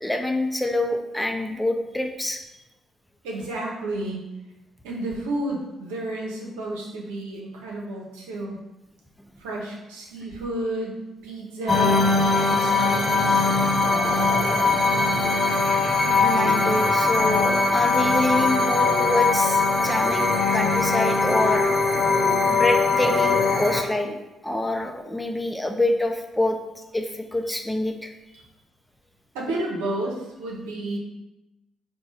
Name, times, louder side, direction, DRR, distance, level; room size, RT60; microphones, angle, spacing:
voice 1, 0.0-2.4 16.2-21.7 22.5-26.6 26.9-28.1, left 1 dB, 5° left, 4 dB, 0.6 m, -26 dB
voice 2, 3.2-4.2 4.8-8.6 9.4-11.0 11.2-12.1 12.5-15.3 29.3-31.0, right 1 dB, 80° right, -2 dB, 0.8 m, -32 dB
sound 1, 11.7-23.8, left 4 dB, 30° left, 1.0 m, -21 dB
sound 2, 14.0-23.6, equal, 70° left, 0.6 m, -34 dB
4.6 x 2.3 x 4.0 m, 0.98 s
hypercardioid pair, 45°, 0 cm